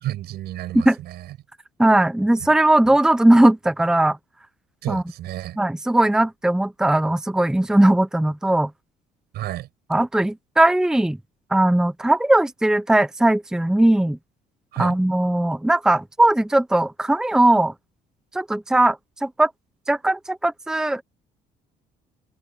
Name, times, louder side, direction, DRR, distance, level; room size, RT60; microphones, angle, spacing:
voice 1, 0.0-1.3 4.8-5.6 9.3-9.7 14.7-15.0, right 14 dB, 75° right, 6.2 m, -31 dB
voice 2, 1.8-4.2 4.9-5.0 5.6-8.7 9.9-11.2 11.5-14.2 14.8-17.7 18.3-19.5 19.9-21.0, right 1 dB, 5° right, 0.8 m, -19 dB
cardioid pair, 110°, 17 cm